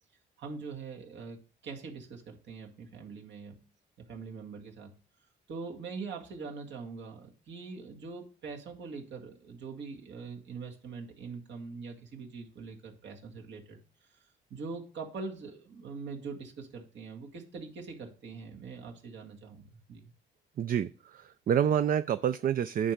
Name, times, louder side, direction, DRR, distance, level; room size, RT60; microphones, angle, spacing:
voice 1, 0.4-3.6 4.1-4.9 5.5-14.2 14.5-20.1, right 4 dB, 65° right, 1 dB, 2.1 m, -43 dB
voice 2, 20.6-22.9, right 9 dB, 45° right, 13 dB, 0.4 m, -28 dB
10.0 x 4.7 x 5.2 m, 0.37 s
cardioid pair, 90°, 20 cm